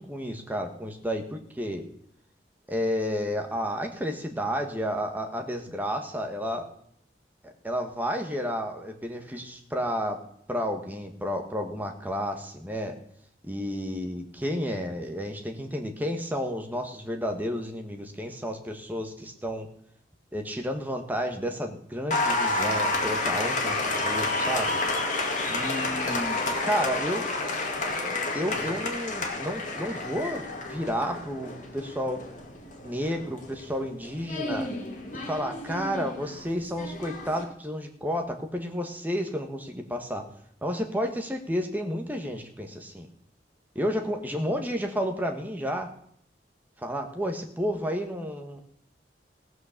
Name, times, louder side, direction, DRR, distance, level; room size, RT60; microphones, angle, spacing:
voice 1, 0.0-1.8 2.7-6.7 7.4-10.2 10.5-12.9 13.4-19.7 20.3-24.8 25.5-27.3 28.3-32.3 32.8-34.7 35.3-40.2 40.6-43.1 43.7-45.9 46.8-48.6, equal, 10° right, 4 dB, 1.4 m, -31 dB
Applause, 22.1-37.4, left 2 dB, 45° left, 2.1 m, -30 dB
17.0 x 6.4 x 6.6 m, 0.69 s
head